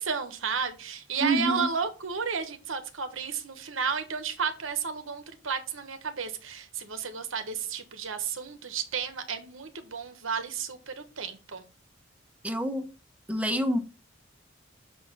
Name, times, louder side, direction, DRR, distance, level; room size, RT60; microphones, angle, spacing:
voice 1, 0.0-11.6, right 6 dB, 90° right, 1.2 m, -32 dB
voice 2, 1.2-1.7 12.4-12.9 13.3-13.8, right 1 dB, 5° right, 0.9 m, -27 dB
6.7 x 4.7 x 5.5 m
head